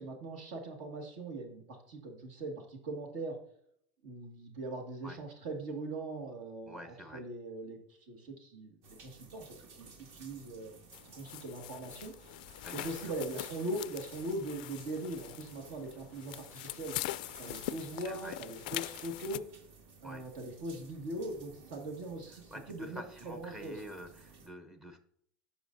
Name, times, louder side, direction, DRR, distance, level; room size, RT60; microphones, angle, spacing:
voice 1, 0.0-3.4 4.0-10.8 11.1-12.4 12.7-16.9 17.4-19.4 20.0-23.8, right 2 dB, 70° right, 3 dB, 1.8 m, -41 dB
voice 2, 6.7-7.2 12.6-13.1 18.0-18.4 20.0-20.2 22.5-25.0, equal, 15° right, 6 dB, 0.7 m, -47 dB
sound 1, 8.8-24.5, right 4 dB, 50° right, 2.0 m, -56 dB
sound 2, 10.9-19.4, left 16 dB, 80° left, 0.3 m, -43 dB
13.0 x 5.2 x 2.6 m, 0.66 s
supercardioid pair, 155°, 5 cm